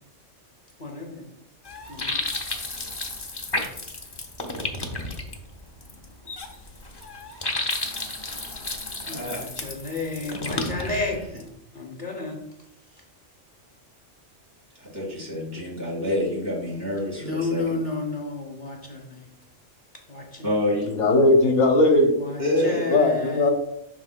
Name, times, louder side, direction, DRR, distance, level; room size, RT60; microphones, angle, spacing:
voice 1, 0.8-1.3 1.9-2.2 9.1-11.3 11.7-12.4 17.2-19.3 20.1-20.5 22.2-23.5, left 3 dB, 45° left, 1 dB, 0.9 m, -31 dB
Water hose and faucet, 1.6-11.5, left 2 dB, 25° left, 0.7 m, -32 dB
voice 2, 9.1-9.4 14.8-17.8 20.4-21.1 22.4-23.0, left 1 dB, 55° right, -3 dB, 2.4 m, -27 dB
voice 3, 20.9-22.1 22.6-23.5, left 2 dB, 80° left, 3 dB, 1.5 m, -19 dB
11.0 x 4.2 x 2.2 m, 0.82 s
omnidirectional pair, 1.3 m